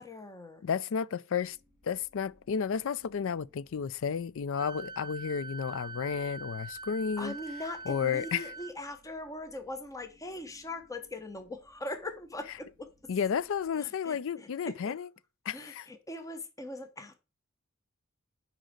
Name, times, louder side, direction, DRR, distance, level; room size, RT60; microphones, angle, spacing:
voice 1, 0.0-0.6 7.2-13.1 13.7-15.0 15.5-17.1, left 1 dB, 15° left, 0.9 m, -41 dB
voice 2, 0.6-1.6 1.8-7.3 7.9-8.4 13.1-15.1 15.5-15.8, left 7 dB, 65° left, 0.4 m, -32 dB
sound 1, 1.4-13.9, equal, 45° left, 4.0 m, -66 dB
Wind instrument woodwind instrument, 4.5-8.7, right 3 dB, 20° right, 0.6 m, -44 dB
6.3 x 5.3 x 6.5 m
head